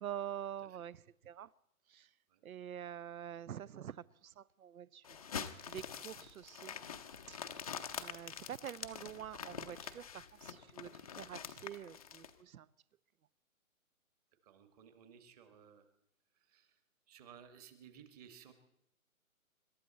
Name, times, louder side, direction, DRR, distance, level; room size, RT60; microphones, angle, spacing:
voice 1, 0.0-1.5 1.9-2.1 2.4-5.0 5.7-6.7 7.3-7.4 7.9-12.7, right 10 dB, 80° right, 0.7 m, -46 dB
sound 1, 5.0-12.3, left 7 dB, 25° left, 0.6 m, -45 dB
voice 2, 14.4-15.8 16.5-16.8 17.1-18.5, right 8 dB, 25° right, 1.5 m, -58 dB
26.0 x 12.5 x 4.2 m
hypercardioid pair, 155°, 42 cm